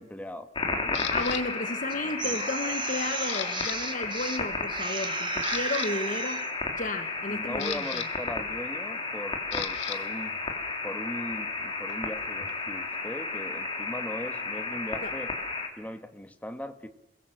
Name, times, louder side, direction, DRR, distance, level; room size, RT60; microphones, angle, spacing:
voice 1, 0.0-1.1 2.0-2.4 7.3-10.4 10.8-15.3 15.8-16.9, equal, 10° left, 8 dB, 1.5 m, -39 dB
sound 1, 0.6-15.7, left 3 dB, 30° left, 3.5 m, -33 dB
Camera, 0.9-1.4 2.0-2.3 2.7-3.8 4.0-4.2 4.8-4.9 5.3-5.9 7.1-10.0 10.3-12.9, left 9 dB, 80° left, 1.9 m, -38 dB
voice 2, 1.1-6.5 6.8-8.0 9.9-10.1 14.9-15.1, left 2 dB, 45° left, 9 dB, 1.2 m, -33 dB
sound 2, 1.9-4.4 4.7-6.5, right 5 dB, 25° right, 1.8 m, -34 dB
28.5 x 21.5 x 7.8 m, 0.91 s
head